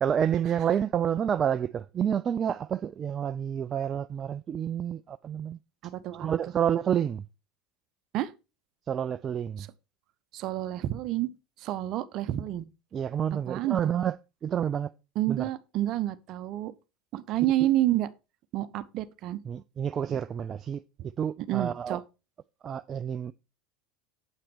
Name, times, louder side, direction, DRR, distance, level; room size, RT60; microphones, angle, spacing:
voice 1, 0.0-5.6 6.2-7.2 8.9-9.6 12.9-14.2 14.4-14.9 15.3-15.5 19.5-20.8 21.2-22.0 22.6-23.3, right 8 dB, 35° right, 0.3 m, -29 dB
voice 2, 5.8-6.5 8.1-8.3 9.6-9.7 10.3-11.3 11.6-12.7 13.3-13.9 15.1-16.7 17.1-18.1 18.5-19.4 21.4-22.0, right 14 dB, 50° right, 0.8 m, -29 dB
8.4 x 5.9 x 4.5 m
hypercardioid pair, 80°, 0 cm